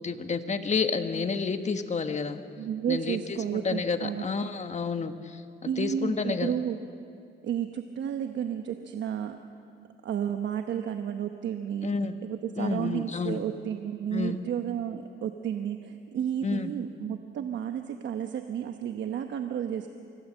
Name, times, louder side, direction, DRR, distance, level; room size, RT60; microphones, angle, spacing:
voice 1, 0.0-2.4 2.9-5.4 5.8-6.5 11.8-12.1 12.6-13.4 14.1-14.4 16.4-16.7, left 5 dB, 35° left, 8 dB, 1.4 m, -30 dB
voice 2, 2.6-4.4 5.7-6.8 7.4-9.4 10.0-11.9 12.2-19.9, right 9 dB, 65° right, 6 dB, 1.0 m, -32 dB
25.5 x 17.0 x 7.6 m, 2.5 s
cardioid pair, 90°, 20 cm